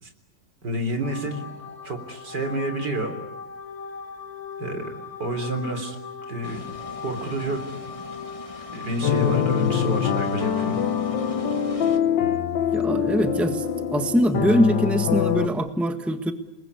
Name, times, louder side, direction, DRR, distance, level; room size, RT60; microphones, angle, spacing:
voice 1, 0.6-1.5 1.8-3.1 4.6-6.0 6.3-6.7 7.0-7.6 8.7-10.8, right 1 dB, 70° right, 7 dB, 4.3 m, -29 dB
sound 1, 1.0-11.7, left 6 dB, 55° left, 3.9 m, -38 dB
sound 2, 6.4-12.0, left 2 dB, 20° left, 1.7 m, -43 dB
sound 3, 9.0-15.5, left 8 dB, 85° left, 1.9 m, -24 dB
voice 2, 12.7-13.6 13.9-16.3, equal, ahead, 7 dB, 1.5 m, -22 dB
30.0 x 20.5 x 9.7 m, 0.92 s
omnidirectional pair, 1.9 m